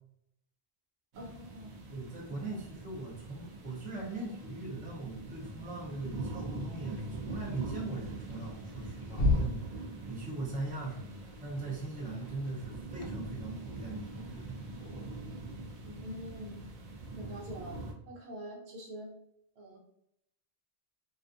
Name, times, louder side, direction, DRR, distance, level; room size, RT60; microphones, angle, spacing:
sound 1, 1.1-17.9, right 2 dB, 60° right, 0.6 m, -43 dB
voice 1, 1.1-1.8 15.8-16.6 17.2-19.1 19.5-19.8, equal, 85° right, -1 dB, 1.0 m, -45 dB
voice 2, 1.9-14.6, right 2 dB, 10° right, -4 dB, 0.5 m, -40 dB
sound 2, 4.8-15.3, left 2 dB, 85° left, 0.9 m, -39 dB
2.5 x 2.3 x 2.5 m, 0.77 s
omnidirectional pair, 1.1 m